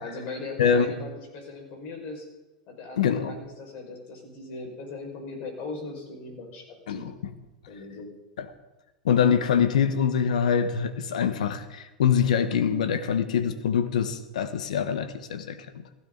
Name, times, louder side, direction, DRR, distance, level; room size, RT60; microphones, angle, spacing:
voice 1, 0.0-2.3 2.7-7.1 7.7-8.1, left 3 dB, 50° left, 1 dB, 5.7 m, -39 dB
voice 2, 0.6-0.9 3.0-3.4 6.9-7.0 8.4-8.5 9.0-15.7, left 7 dB, 85° left, 10 dB, 1.3 m, -24 dB
16.0 x 15.5 x 4.1 m, 1.1 s
hypercardioid pair, 110°, 4 cm